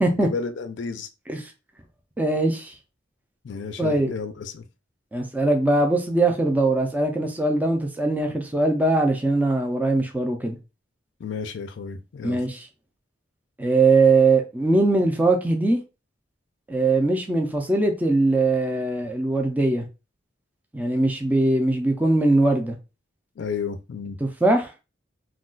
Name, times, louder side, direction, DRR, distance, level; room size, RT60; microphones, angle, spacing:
voice 1, 0.1-1.1 3.4-4.6 11.2-12.4 23.4-24.2, left 5 dB, 70° left, 0.4 m, -32 dB
voice 2, 2.2-2.8 3.8-4.1 5.1-10.6 12.2-12.7 13.6-15.8 16.7-19.9 20.7-22.8 24.2-24.7, right 2 dB, 10° right, 0.3 m, -21 dB
2.3 x 2.2 x 3.7 m
head